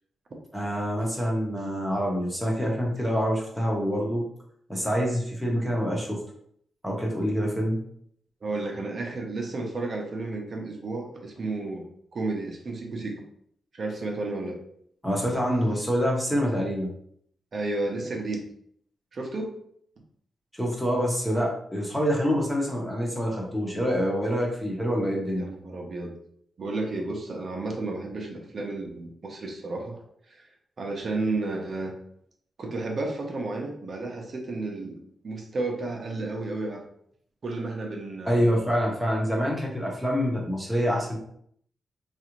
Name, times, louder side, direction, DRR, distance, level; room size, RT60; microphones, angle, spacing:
voice 1, 0.5-4.3 4.7-6.2 6.8-7.8 15.0-16.9 20.5-25.4 38.2-41.2, equal, ahead, -2 dB, 0.8 m, -26 dB
voice 2, 8.4-13.2 13.7-14.6 17.5-18.4 19.1-19.6 25.3-26.1 26.6-29.9 30.3-30.5 30.8-31.9 32.6-35.0 35.2-36.8 37.4-38.4, right 2 dB, 45° right, 1 dB, 0.6 m, -32 dB
3.9 x 2.4 x 3.0 m, 0.67 s
wide cardioid pair, 160°, 0 cm